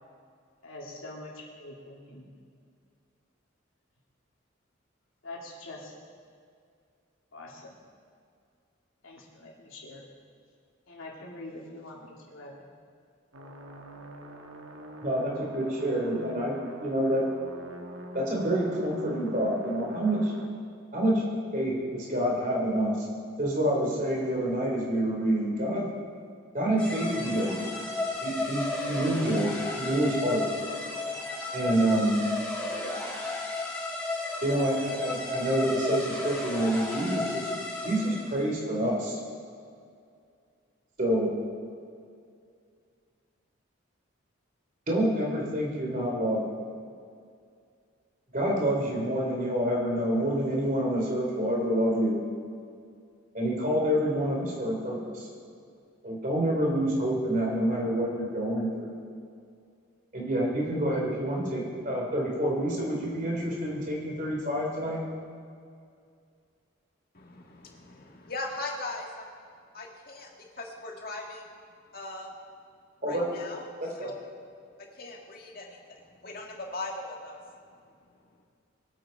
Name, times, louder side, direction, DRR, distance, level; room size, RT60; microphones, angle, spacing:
voice 1, 0.6-2.3 5.2-5.9 7.3-7.7 9.0-10.0 10.9-12.7, left 2 dB, 85° left, -3 dB, 3.0 m, -44 dB
sound 1, 13.3-20.5, right 1 dB, 85° right, 1.6 m, -45 dB
voice 2, 15.0-17.2 18.1-20.3 20.9-21.2 21.5-23.0 23.4-25.9 26.5-27.6 28.2-29.5 29.8-30.4 31.5-32.2 34.4-37.5 37.8-39.2 41.0-41.3 44.9-46.4 48.3-52.2 53.3-55.3 56.0-58.9 60.1-65.0 73.0-73.2 73.8-74.1, right 1 dB, 40° right, -2 dB, 3.3 m, -27 dB
sound 2, 26.8-38.4, left 2 dB, 5° left, 2.8 m, -33 dB
voice 3, 67.1-69.3 69.7-70.3 70.6-71.5 71.9-72.3 73.1-73.7 74.0-74.2 74.8-77.4, left 2 dB, 45° left, 0 dB, 1.9 m, -39 dB
22.5 x 8.5 x 4.6 m, 2.3 s
head